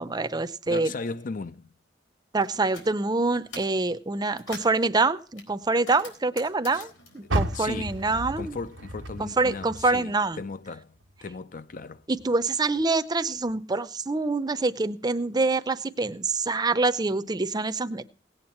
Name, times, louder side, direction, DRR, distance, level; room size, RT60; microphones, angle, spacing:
voice 1, 0.0-0.9 2.3-8.6 9.2-10.4 12.1-18.1, right 3 dB, 20° right, 0.6 m, -26 dB
voice 2, 0.7-1.7 6.7-6.9 7.2-8.0 8.4-10.1 10.4-12.0, left 3 dB, 45° left, 0.6 m, -37 dB
sound 1, 2.4-2.9 3.3-3.8 4.2-4.8 5.4-8.3 8.6-9.7, left 3 dB, 90° left, 4.0 m, -45 dB
Car, 7.2-10.5 10.9-12.3 12.8-12.9 13.5-13.6, right 1 dB, 90° right, 1.3 m, -33 dB
18.0 x 8.8 x 4.4 m
head